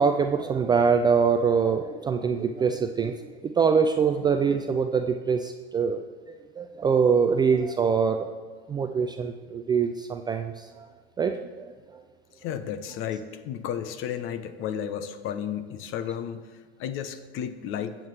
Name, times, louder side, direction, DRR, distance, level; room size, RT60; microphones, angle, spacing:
voice 1, 0.0-3.1 3.4-6.0 6.6-8.3 8.7-10.9 11.2-11.7, right 6 dB, 15° right, 6 dB, 0.4 m, -24 dB
voice 2, 12.4-16.4 16.8-18.0, left 9 dB, 40° left, 11 dB, 0.9 m, -33 dB
21.0 x 7.4 x 3.3 m, 1.5 s
hypercardioid pair, 105°, 32 cm